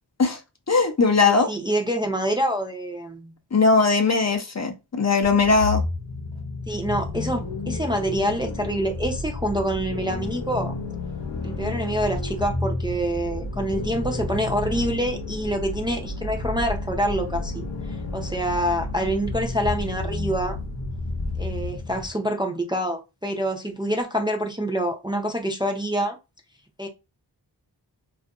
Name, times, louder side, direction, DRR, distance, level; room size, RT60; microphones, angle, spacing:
voice 1, 0.7-1.5 3.5-5.8, left 4 dB, 40° left, 0.5 m, -19 dB
voice 2, 1.2-3.3 6.7-10.7 11.4-17.7 18.1-20.6 21.4-26.2 26.8-26.9, right 1 dB, 10° right, 0.5 m, -26 dB
sound 1, 5.2-22.1, left 3 dB, 85° left, 0.8 m, -31 dB
2.6 x 2.4 x 2.3 m
wide cardioid pair, 50°, 43 cm